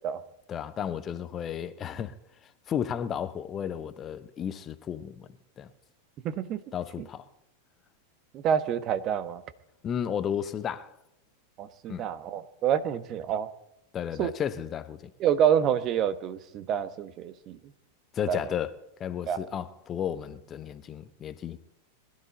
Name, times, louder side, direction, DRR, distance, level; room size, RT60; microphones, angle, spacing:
voice 1, 0.5-2.1 2.4-5.3 5.6-5.7 6.7-7.3 9.8-10.9 11.9-12.0 13.9-15.1 18.1-18.7 19.0-21.6, left 9 dB, 25° left, 0.8 m, -33 dB
voice 2, 6.2-6.6 7.0-7.1 8.3-9.4 11.6-13.5 14.2-14.3 15.2-17.7 18.3-18.4 19.3-19.4, right 9 dB, 35° right, 1.1 m, -27 dB
21.0 x 12.5 x 4.1 m
figure-of-eight pair, 90°, 0 cm